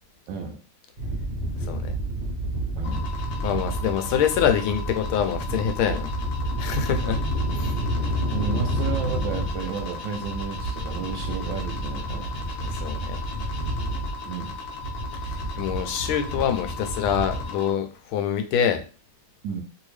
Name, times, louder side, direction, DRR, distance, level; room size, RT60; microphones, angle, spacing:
voice 1, 0.3-0.6 2.7-3.0 8.3-12.3 14.2-14.6 19.4-19.6, right 5 dB, 75° right, 3 dB, 1.1 m, -32 dB
sound 1, 1.0-17.4, right 1 dB, 45° right, 0.7 m, -30 dB
voice 2, 1.6-2.0 3.4-6.1 6.6-7.2 7.5-7.8 12.6-13.2 15.2-18.8, left 8 dB, 80° left, 7 dB, 1.4 m, -25 dB
sound 2, 2.8-17.7, left 5 dB, 60° left, 0.9 m, -38 dB
3.3 x 2.7 x 3.1 m, 0.34 s
omnidirectional pair, 2.3 m